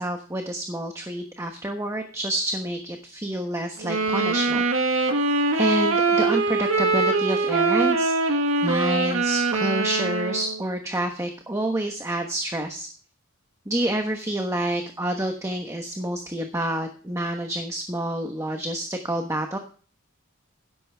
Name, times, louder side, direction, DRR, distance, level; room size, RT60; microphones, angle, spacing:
voice 1, 0.0-5.2 5.5-12.9 13.7-19.6, right 1 dB, 15° right, 4 dB, 1.2 m, -28 dB
sound 1, 3.8-10.6, right 3 dB, 75° right, 1.5 m, -23 dB
13.0 x 11.0 x 3.5 m, 0.41 s
head